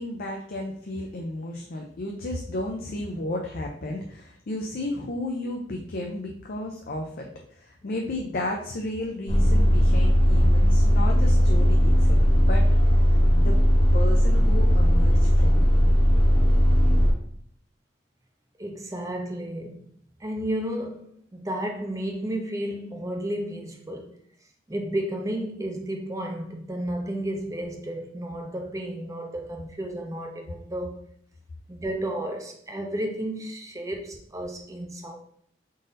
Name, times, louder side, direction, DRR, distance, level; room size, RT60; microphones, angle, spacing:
voice 1, 0.0-12.2 12.5-12.7 13.4-13.6 13.9-15.7, left 1 dB, 55° left, 0.5 m, -33 dB
sound 1, 9.3-17.1, equal, 30° left, 0.9 m, -18 dB
voice 2, 18.6-19.9 20.2-21.0 21.3-24.2 24.7-31.0 31.7-35.2, right 1 dB, 20° right, 0.5 m, -32 dB
3.9 x 2.6 x 3.8 m
head